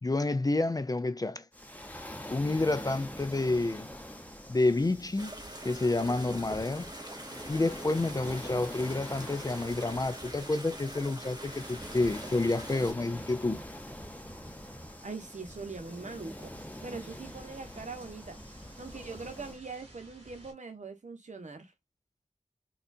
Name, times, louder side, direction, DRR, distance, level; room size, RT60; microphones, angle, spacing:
voice 1, 0.0-1.4 2.3-3.9 4.5-5.3 5.6-6.9 7.5-13.6, left 2 dB, 30° left, 0.4 m, -29 dB
Waves surf, 1.5-19.6, equal, 10° left, 0.8 m, -45 dB
sound 1, 5.2-12.9, right 1 dB, 30° right, 0.9 m, -44 dB
sound 2, 9.9-20.5, right 1 dB, 50° right, 2.1 m, -57 dB
voice 2, 15.0-16.5 16.8-18.4 18.8-21.7, right 4 dB, 70° right, 1.0 m, -42 dB
4.2 x 2.4 x 2.6 m
wide cardioid pair, 50°, 13 cm